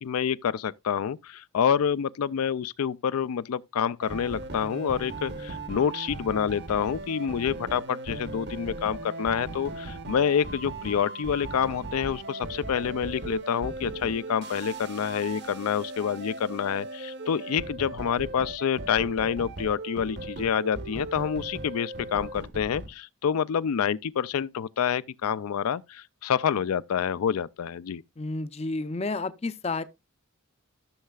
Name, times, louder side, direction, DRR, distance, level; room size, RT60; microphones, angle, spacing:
voice 1, 0.0-28.0, left 7 dB, 85° left, 0.4 m, -27 dB
sound 1, 4.0-22.9, right 2 dB, 50° right, 1.0 m, -38 dB
voice 2, 28.2-29.8, left 3 dB, 30° left, 0.5 m, -31 dB
14.5 x 6.5 x 2.3 m
head